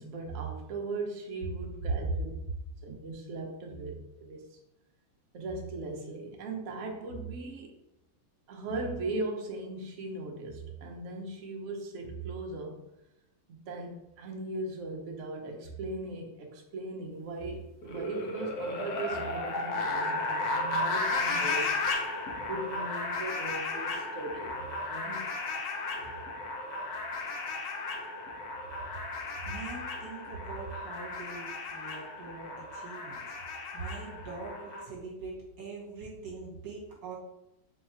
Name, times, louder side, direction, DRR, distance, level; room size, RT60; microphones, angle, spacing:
voice 1, 0.0-2.3 2.8-4.6 5.3-7.7 8.5-12.8 13.5-21.8 22.4-25.3 26.0-26.1, right 2 dB, 85° right, 0 dB, 0.6 m, -38 dB
sound 1, 17.8-34.8, left 2 dB, 65° left, 1.0 m, -34 dB
voice 2, 29.4-33.3 33.7-37.2, right 3 dB, 50° right, -5 dB, 1.5 m, -42 dB
3.4 x 2.3 x 4.3 m, 0.87 s
omnidirectional pair, 2.3 m